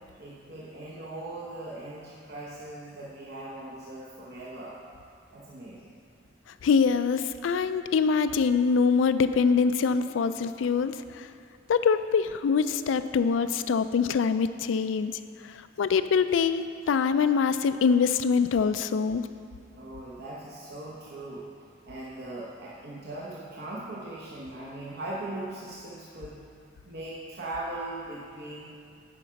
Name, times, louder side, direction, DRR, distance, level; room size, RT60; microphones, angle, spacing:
voice 1, 0.2-4.8 5.3-6.0 19.8-21.5 21.8-26.5 26.9-28.6, right 2 dB, 55° right, -5 dB, 0.9 m, -39 dB
voice 2, 6.6-11.3 11.7-15.2 15.8-19.3, left 5 dB, 85° left, 12 dB, 0.4 m, -24 dB
9.0 x 5.1 x 5.8 m, 2.4 s
head